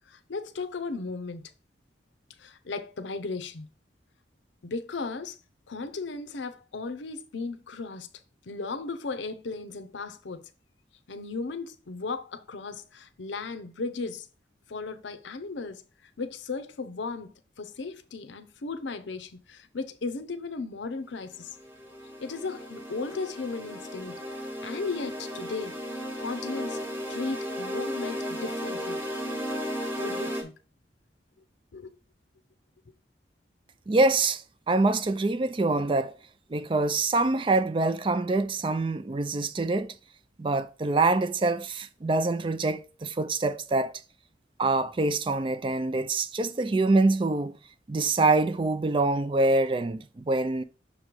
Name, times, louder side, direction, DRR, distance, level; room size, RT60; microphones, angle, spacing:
voice 1, 0.1-1.5 2.4-3.7 4.6-5.4 5.7-8.1 8.5-10.4 11.1-14.3 14.7-15.8 16.2-21.6 22.2-25.7 26.2-26.8 27.1-29.0 30.0-30.5 31.7-31.9, left 4 dB, 85° left, 0.6 m, -36 dB
sound 1, 21.3-30.4, equal, 10° right, 1.1 m, -35 dB
voice 2, 33.9-36.1 36.5-39.9 40.4-43.9 44.6-47.6 47.9-50.6, right 2 dB, 30° right, 0.4 m, -25 dB
6.3 x 3.1 x 5.1 m
head